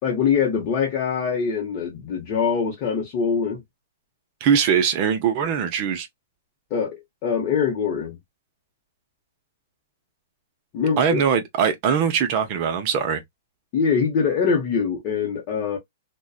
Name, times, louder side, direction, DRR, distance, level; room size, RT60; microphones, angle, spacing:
voice 1, 0.0-3.6 6.7-8.2 10.7-11.2 13.7-15.8, left 6 dB, 35° left, 0.8 m, -23 dB
voice 2, 4.4-6.1 11.0-13.2, right 7 dB, 40° right, 0.6 m, -21 dB
2.5 x 2.2 x 2.3 m
hypercardioid pair, 155°, 0 cm